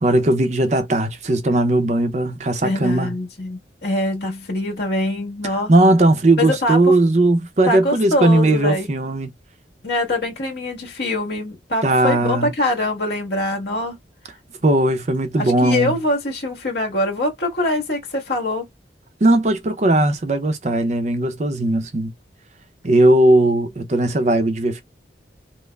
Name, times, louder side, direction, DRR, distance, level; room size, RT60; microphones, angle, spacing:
voice 1, 0.0-3.1 5.7-9.3 11.8-12.5 14.6-16.0 19.2-22.1 22.8-24.8, right 1 dB, 40° right, 0.6 m, -18 dB
voice 2, 2.6-5.7 6.4-6.9 7.7-8.9 9.8-14.0 15.4-18.7, left 1 dB, 70° left, 1.5 m, -23 dB
5.2 x 2.0 x 2.3 m
head